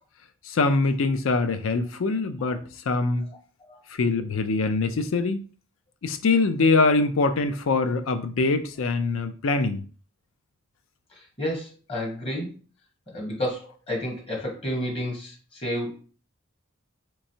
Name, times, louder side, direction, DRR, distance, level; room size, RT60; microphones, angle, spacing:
voice 1, 0.5-2.6 2.9-3.3 4.0-5.4 6.0-9.8, left 3 dB, 75° left, 10 dB, 0.5 m, -23 dB
voice 2, 11.4-12.6 13.1-16.1, equal, 30° left, -1 dB, 1.1 m, -31 dB
3.4 x 3.1 x 2.7 m, 0.39 s
head